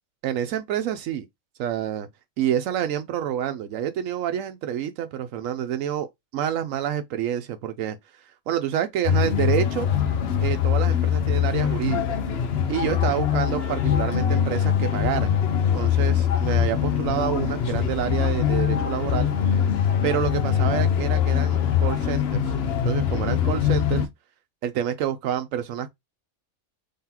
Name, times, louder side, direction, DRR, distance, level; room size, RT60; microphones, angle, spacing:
voice 1, 0.2-1.3 1.6-2.1 2.4-6.1 6.3-8.0 8.5-9.9 10.4-12.2 12.7-15.3 15.7-19.3 20.0-22.5 22.8-24.1 24.6-25.9, right 10 dB, 80° right, 1.0 m, -28 dB
sound 1, 9.0-24.1, left 9 dB, 55° left, 0.9 m, -23 dB
3.7 x 3.6 x 2.8 m
omnidirectional pair, 1.4 m